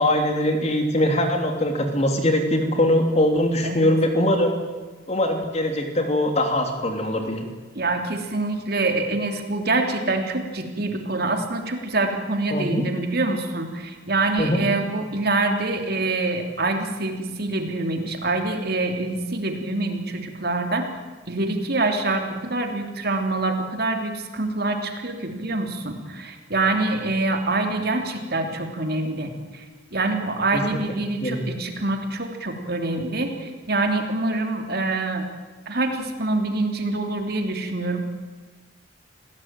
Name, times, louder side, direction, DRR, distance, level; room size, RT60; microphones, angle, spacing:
voice 1, 0.0-4.5 5.1-7.5 12.5-12.8 14.4-14.7 30.5-30.8 31.2-31.4, left 1 dB, 35° left, 4 dB, 3.2 m, -22 dB
voice 2, 7.7-20.9 21.3-29.6 29.9-35.3 35.7-38.0, right 2 dB, 50° right, 4 dB, 3.1 m, -25 dB
27.5 x 17.5 x 9.2 m, 1.3 s
head